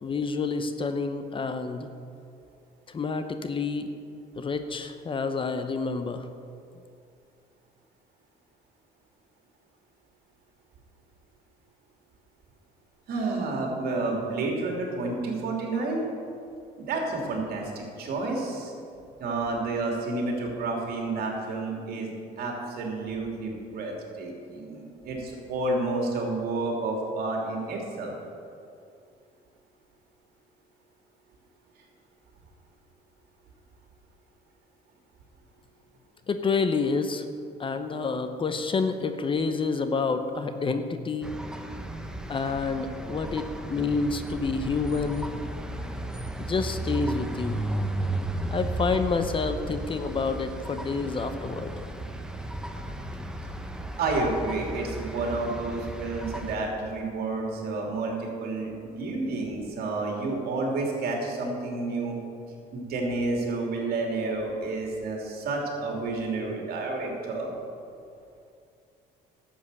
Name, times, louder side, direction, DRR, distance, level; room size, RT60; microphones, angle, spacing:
voice 1, 0.0-1.9 2.9-3.9 4.4-6.3 36.3-37.3 37.6-41.4 42.3-43.4 43.7-45.3 46.4-47.6 48.5-51.7, left 4 dB, 30° left, 9 dB, 0.8 m, -28 dB
voice 2, 13.1-16.1 16.8-18.7 19.2-22.1 22.4-28.1 54.0-62.2 62.7-67.5, right 3 dB, 65° right, 0 dB, 2.8 m, -30 dB
sound 1, 41.2-56.6, right 1 dB, 5° right, 0.9 m, -34 dB
12.0 x 7.7 x 6.8 m, 2.5 s
cardioid pair, 110°, 17 cm